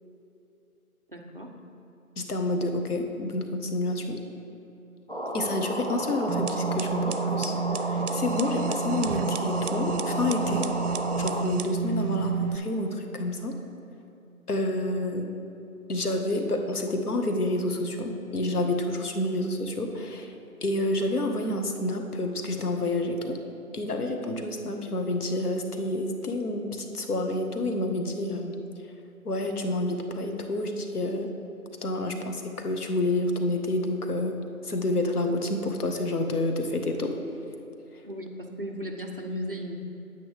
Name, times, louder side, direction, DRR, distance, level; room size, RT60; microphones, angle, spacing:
voice 1, 1.1-1.6 38.0-39.8, equal, 40° right, 1 dB, 0.6 m, -36 dB
voice 2, 2.2-4.2 5.3-10.7 11.2-13.6 14.5-15.3 15.9-20.3 20.6-23.4 23.7-28.6 29.2-31.3 31.8-34.4 34.6-37.1, left 2 dB, 85° left, 4 dB, 1.2 m, -29 dB
sound 1, 5.1-11.5, equal, 40° left, 0.5 m, -32 dB
sound 2, 6.3-12.6, right 7 dB, 85° right, 0.6 m, -30 dB
9.4 x 8.4 x 3.4 m, 2.8 s
figure-of-eight pair, 170°, 44 cm